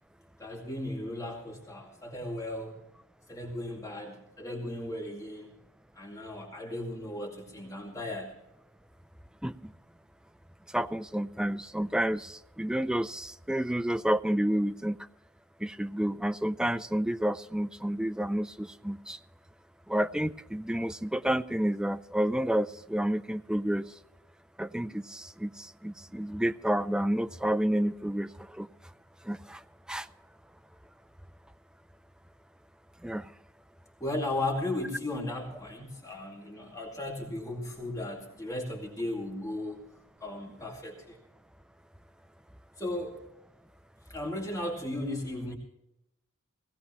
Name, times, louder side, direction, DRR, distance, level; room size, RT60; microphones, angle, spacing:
voice 1, 0.4-2.8 3.3-5.5 6.0-8.3 34.0-39.8 40.2-41.2 42.8-43.2 44.1-45.6, left 1 dB, 15° left, -1 dB, 2.3 m, -36 dB
voice 2, 10.7-15.0 15.6-19.2 19.9-23.8 24.6-25.5 25.8-28.3 28.6-28.7 29.3-29.6 29.9-30.1 33.0-33.2, right 1 dB, 5° right, 11 dB, 0.4 m, -30 dB
19.0 x 16.5 x 3.0 m, 0.85 s
head